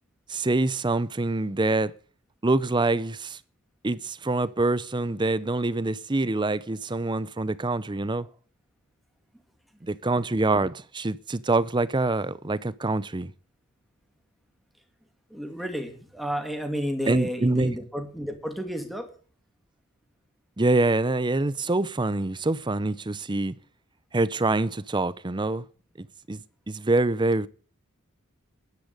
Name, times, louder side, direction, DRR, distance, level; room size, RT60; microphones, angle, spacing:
voice 1, 0.3-1.9 2.4-3.4 3.8-8.3 9.8-13.3 17.1-17.8 20.6-23.5 24.1-25.6 26.0-26.4 26.7-27.5, right 2 dB, 20° right, 0.6 m, -25 dB
voice 2, 15.3-19.1, equal, ahead, 2.6 m, -32 dB
11.5 x 10.5 x 6.7 m
head